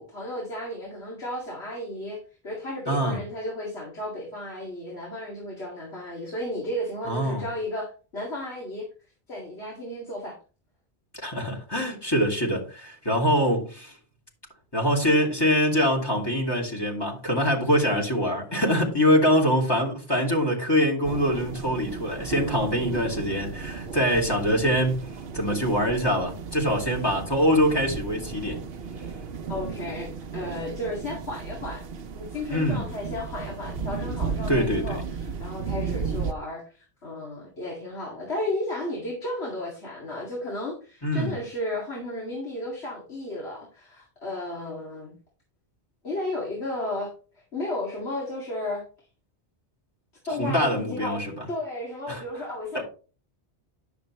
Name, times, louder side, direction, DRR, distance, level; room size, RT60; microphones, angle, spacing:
voice 1, 0.0-8.9 9.3-10.4 29.5-45.2 46.0-47.1 47.5-48.8 50.3-52.8, left 1 dB, 80° left, 2.5 m, -34 dB
voice 2, 2.9-3.2 7.1-7.4 11.2-13.9 14.7-25.0 25.3-28.6 32.5-32.8 34.5-35.0 41.0-41.3 50.4-51.4 52.1-52.2 52.7-52.8, equal, 20° left, 2.4 m, -24 dB
sound 1, 21.0-36.3, right 5 dB, 65° right, 0.9 m, -35 dB
9.8 x 7.0 x 3.1 m
omnidirectional pair, 1.1 m